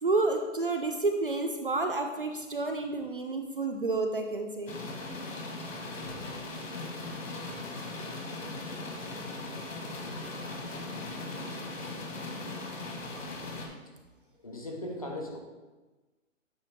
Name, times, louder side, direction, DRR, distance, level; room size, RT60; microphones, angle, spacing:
voice 1, 0.0-4.8, right 3 dB, 45° right, 5 dB, 0.4 m, -30 dB
sound 1, 4.7-13.7, left 2 dB, 85° left, 1.8 m, -39 dB
voice 2, 14.4-15.4, left 1 dB, 30° left, 0 dB, 0.6 m, -37 dB
8.5 x 3.8 x 3.6 m, 1.2 s
hypercardioid pair, 180°, 39 cm